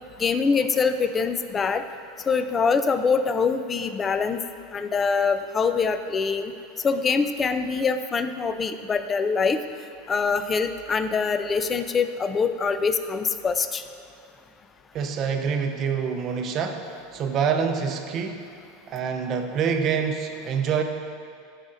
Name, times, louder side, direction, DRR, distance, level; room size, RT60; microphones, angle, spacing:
voice 1, 0.2-1.8 2.3-4.4 4.7-6.5 6.8-9.6 10.1-13.8, left 5 dB, 20° left, 9 dB, 0.3 m, -24 dB
voice 2, 14.9-18.4 18.9-20.8, right 6 dB, 40° right, 5 dB, 0.6 m, -26 dB
12.0 x 4.9 x 2.6 m, 2.5 s
supercardioid pair, 140°, 0 cm